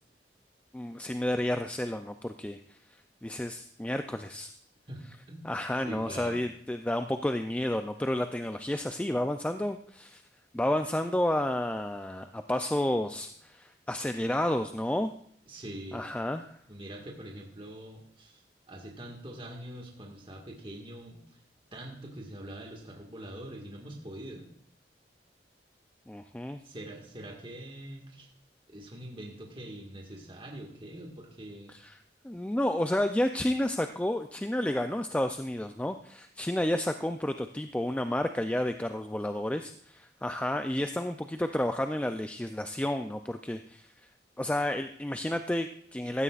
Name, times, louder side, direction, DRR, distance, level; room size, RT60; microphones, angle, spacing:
voice 1, 0.7-2.8 3.2-4.6 5.4-10.2 10.5-15.1 15.9-16.6 26.1-26.6 31.7-32.0 32.2-43.9 44.4-46.2, left 1 dB, 5° left, 7 dB, 0.4 m, -31 dB
voice 2, 4.9-5.5 5.8-6.4 15.5-16.1 16.7-21.2 21.7-24.5 26.6-28.3 28.7-31.7, right 1 dB, 30° right, 0 dB, 1.8 m, -44 dB
16.0 x 12.5 x 2.5 m, 0.65 s
head